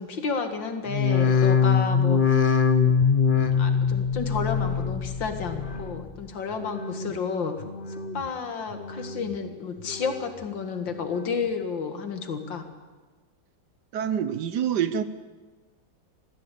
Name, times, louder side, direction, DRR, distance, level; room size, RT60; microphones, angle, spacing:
voice 1, 0.0-2.2 2.8-2.9 3.6-7.6 8.1-12.7, left 5 dB, 70° left, 7 dB, 2.5 m, -31 dB
sound 1, 0.9-6.2 6.5-7.1 7.6-8.3 8.7-9.4 9.8-10.4 10.9-11.5 12.0-12.1, left 6 dB, 35° left, 1.0 m, -24 dB
voice 2, 13.9-15.0, right 8 dB, 65° right, 14 dB, 1.3 m, -26 dB
21.0 x 15.0 x 8.5 m, 1.3 s
omnidirectional pair, 2.1 m